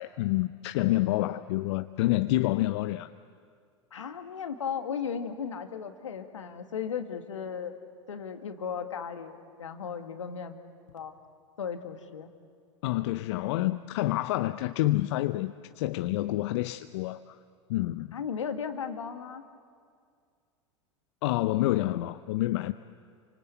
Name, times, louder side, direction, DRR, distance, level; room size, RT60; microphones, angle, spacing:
voice 1, 0.0-3.1 12.8-17.4 17.7-18.2 21.2-22.7, left 17 dB, 65° left, 0.7 m, -28 dB
voice 2, 3.9-7.8 8.1-10.6 10.9-11.1 11.6-12.3 18.1-19.4, left 7 dB, 85° left, 2.0 m, -36 dB
28.0 x 25.5 x 8.3 m
hypercardioid pair, 85°, 16 cm